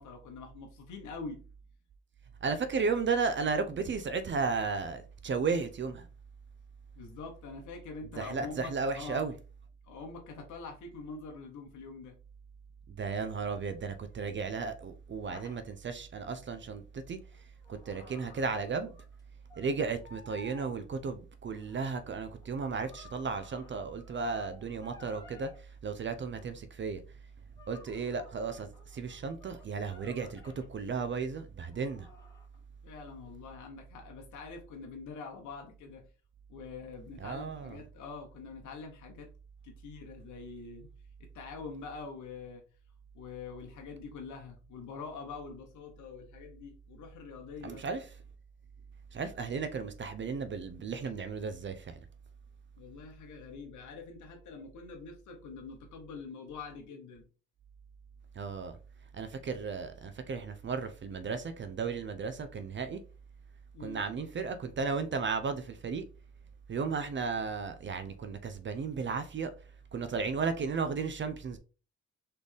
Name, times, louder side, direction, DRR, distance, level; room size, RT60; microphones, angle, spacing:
voice 1, 0.0-1.4 6.9-9.3 9.8-12.1 32.8-36.0 36.5-39.3 39.6-40.9 41.2-42.6 43.1-47.8 52.8-57.2 63.7-64.0, left 4 dB, 75° left, 1.1 m, -45 dB
voice 2, 2.4-6.1 8.2-9.3 12.9-17.2 17.7-18.9 19.6-27.0 27.7-32.1 37.2-37.8 47.6-48.1 49.1-52.0 58.4-58.8 59.1-63.0 63.8-66.0 66.7-69.5 69.9-71.6, right 5 dB, 40° right, 0.6 m, -34 dB
sound 1, 15.3-15.6 17.1-19.2 19.5-19.8 20.0-20.7 21.5-25.6 26.4-26.5 27.6-30.7 31.7-32.6, left 2 dB, 10° left, 1.6 m, -55 dB
4.2 x 3.3 x 3.5 m
cardioid pair, 90°, 30 cm